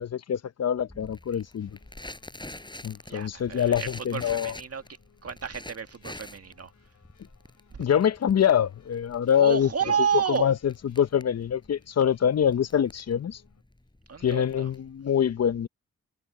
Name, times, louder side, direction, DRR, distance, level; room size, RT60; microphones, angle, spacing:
voice 1, 0.0-1.7 2.8-4.5 7.8-9.7 10.4-10.5 10.9-13.4 14.2-15.7, left 9 dB, 55° left, 0.8 m, -24 dB
Crackle, 0.9-15.1, left 1 dB, 15° left, 6.6 m, -46 dB
sound 1, 1.6-13.6, left 8 dB, 70° left, 7.5 m, -63 dB
voice 2, 3.1-4.8 5.2-6.7 7.7-7.9 9.4-10.5 14.1-14.7, right 7 dB, 50° right, 1.9 m, -30 dB
supercardioid pair, 45°, 30 cm